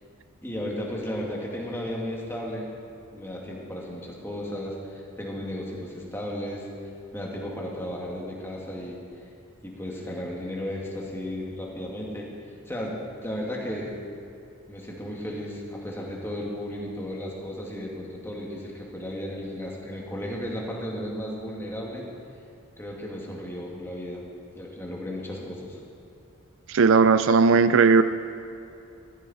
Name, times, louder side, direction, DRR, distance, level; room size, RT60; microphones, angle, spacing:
voice 1, 0.4-2.7 3.1-6.7 7.1-9.0 9.6-12.3 12.7-14.0 14.7-22.0 22.8-24.2 24.6-25.8, left 1 dB, 10° left, -3 dB, 2.1 m, -34 dB
voice 2, 26.7-28.0, right 5 dB, 60° right, 11 dB, 0.4 m, -17 dB
15.0 x 14.5 x 4.2 m, 2.6 s
head